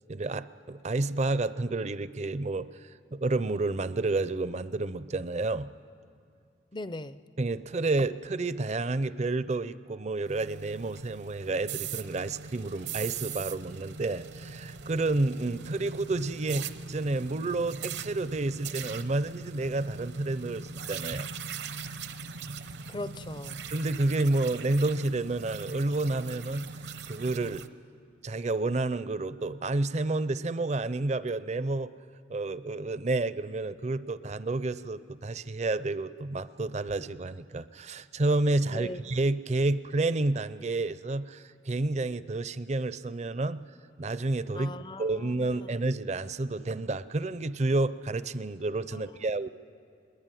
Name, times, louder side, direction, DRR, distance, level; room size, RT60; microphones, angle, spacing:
voice 1, 0.1-2.7 3.1-5.7 7.4-21.3 23.7-26.7 27.1-27.7 28.2-31.9 32.3-43.6 44.0-44.7 45.0-49.5, right 2 dB, 35° right, 0.5 m, -30 dB
voice 2, 6.7-7.2 22.9-23.6 38.6-39.0 44.5-45.7 48.9-49.3, left 2 dB, 25° left, 0.5 m, -40 dB
sound 1, 10.3-27.7, right 5 dB, 65° right, 0.8 m, -40 dB
21.5 x 21.5 x 9.2 m
head